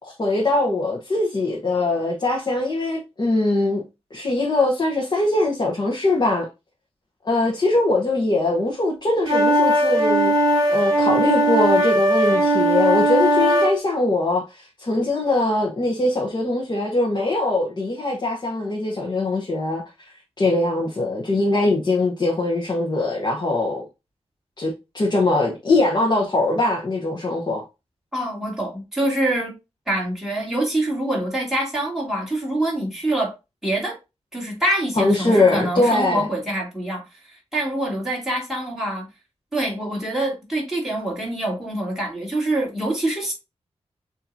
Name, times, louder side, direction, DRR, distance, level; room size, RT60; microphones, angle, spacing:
voice 1, 0.0-3.8 4.1-6.5 7.2-10.3 10.7-19.8 20.4-23.9 24.6-27.6 35.0-36.2, left 2 dB, 40° left, 1.0 m, -22 dB
sound 1, 9.3-13.7, right 1 dB, 50° right, 2.0 m, -18 dB
voice 2, 28.1-29.5 29.9-33.3 33.6-34.0 34.3-39.1 39.5-43.3, right 1 dB, 5° right, 2.4 m, -25 dB
7.1 x 2.8 x 2.7 m
wide cardioid pair, 140°, 11 cm